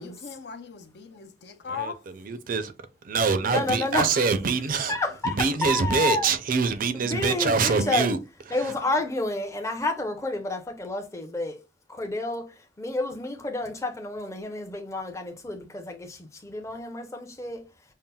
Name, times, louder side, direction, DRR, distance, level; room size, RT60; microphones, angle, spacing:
voice 1, 0.0-2.0 8.7-9.0, left 6 dB, 65° left, 0.5 m, -38 dB
voice 2, 1.6-2.7 3.0-5.0 5.2-8.2 8.5-8.7, right 4 dB, 50° right, 0.4 m, -25 dB
voice 3, 3.4-4.1 4.9-6.3 6.9-8.1 8.5-11.6 11.9-17.6, left 2 dB, 15° left, 0.6 m, -30 dB
5.4 x 2.0 x 2.3 m
head